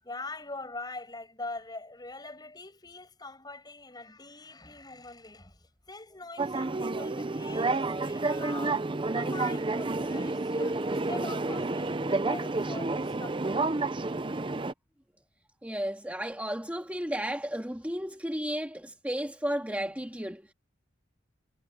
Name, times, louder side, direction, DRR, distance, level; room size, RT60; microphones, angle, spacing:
voice 1, 0.0-8.9 9.1-13.6, left 2 dB, 20° left, 7.8 m, -43 dB
sound 1, 6.4-14.7, right 3 dB, 25° right, 0.6 m, -30 dB
voice 2, 15.6-20.5, equal, 10° right, 2.0 m, -33 dB
head